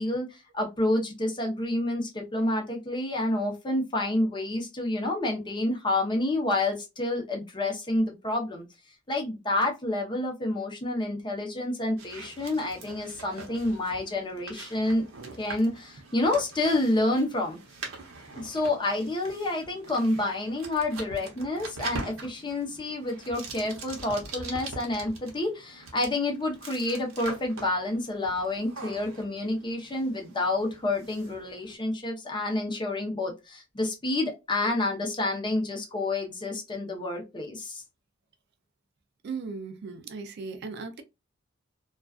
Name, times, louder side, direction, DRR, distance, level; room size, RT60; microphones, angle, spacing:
voice 1, 0.0-8.6 9.1-15.1 15.4-17.6 18.4-37.8, left 2 dB, 25° left, 0.7 m, -29 dB
sound 1, 12.0-31.8, right 3 dB, 85° right, 0.8 m, -43 dB
voice 2, 39.2-41.0, right 4 dB, 55° right, 0.4 m, -37 dB
2.4 x 2.3 x 2.2 m
head